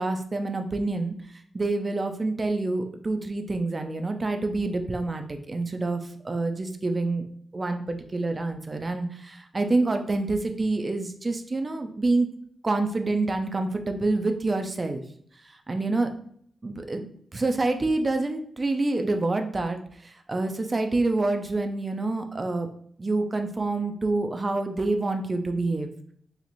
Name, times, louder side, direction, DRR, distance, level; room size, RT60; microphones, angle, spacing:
voice 1, 0.0-7.2 7.5-12.3 12.6-15.0 15.7-16.1 16.6-17.1 17.3-22.7 23.0-25.9, right 2 dB, 30° right, 6 dB, 0.4 m, -27 dB
4.1 x 2.4 x 3.0 m, 0.63 s
cardioid pair, 80°, 0 cm